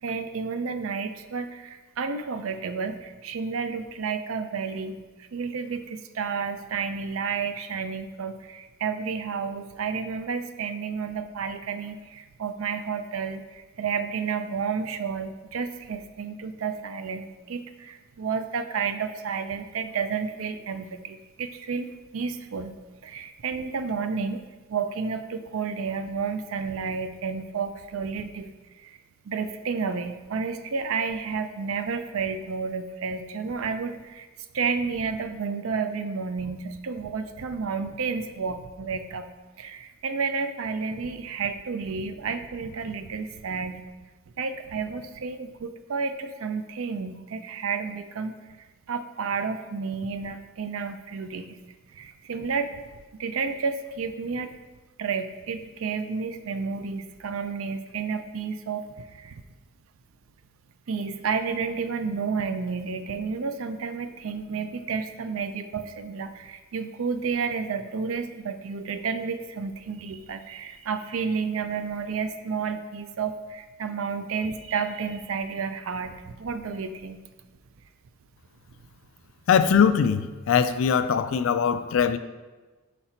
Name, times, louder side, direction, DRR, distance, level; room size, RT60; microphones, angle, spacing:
voice 1, 0.0-22.7 23.0-24.4 24.7-28.5 28.8-29.0 29.3-34.3 34.5-39.3 39.6-43.8 44.4-48.4 48.9-51.6 51.9-52.8 53.2-54.5 55.0-59.4 60.9-77.2, right 5 dB, 70° right, 9 dB, 0.4 m, -31 dB
voice 2, 79.5-82.2, left 7 dB, 65° left, 12 dB, 0.3 m, -21 dB
5.8 x 4.1 x 4.3 m, 1.2 s
head